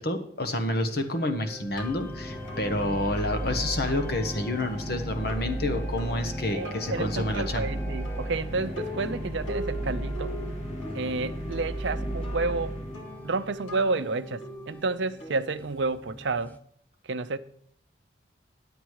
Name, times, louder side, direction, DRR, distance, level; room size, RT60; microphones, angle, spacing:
voice 1, 0.0-7.7, left 1 dB, 50° left, 1.2 m, -29 dB
sound 1, 0.8-16.6, equal, 10° left, 0.6 m, -45 dB
sound 2, 1.0-16.3, left 1 dB, 75° left, 2.5 m, -44 dB
sound 3, 1.7-13.5, right 1 dB, 35° left, 2.1 m, -34 dB
voice 2, 6.5-10.3 10.9-12.7 13.2-16.6 17.0-17.4, right 3 dB, 65° right, 0.6 m, -30 dB
10.5 x 8.2 x 4.7 m
head